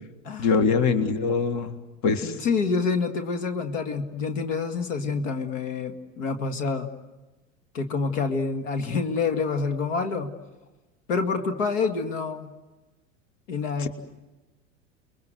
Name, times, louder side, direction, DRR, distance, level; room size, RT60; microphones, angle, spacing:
voice 1, 0.4-1.8 2.0-2.4 13.8-13.9, left 5 dB, 45° left, 9 dB, 2.0 m, -23 dB
voice 2, 2.2-6.9 7.7-10.3 11.1-12.5 13.5-13.9, left 4 dB, 75° left, 7 dB, 2.1 m, -27 dB
30.0 x 22.0 x 8.0 m, 1.1 s
hypercardioid pair, 90°, 39 cm